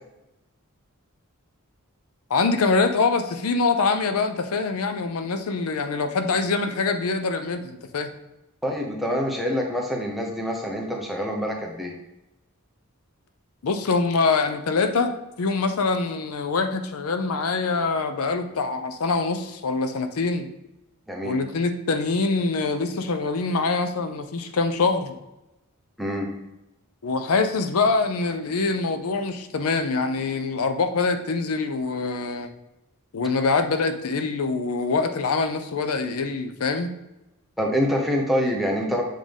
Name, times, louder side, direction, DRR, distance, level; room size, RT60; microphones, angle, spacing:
voice 1, 2.3-8.1 13.6-20.5 21.2-25.2 27.0-32.5 33.1-37.0, left 4 dB, 80° left, 8 dB, 0.5 m, -24 dB
voice 2, 8.6-11.9 21.1-21.4 26.0-26.3 37.6-39.0, equal, ahead, -1 dB, 0.8 m, -26 dB
7.3 x 3.8 x 3.5 m, 0.94 s
head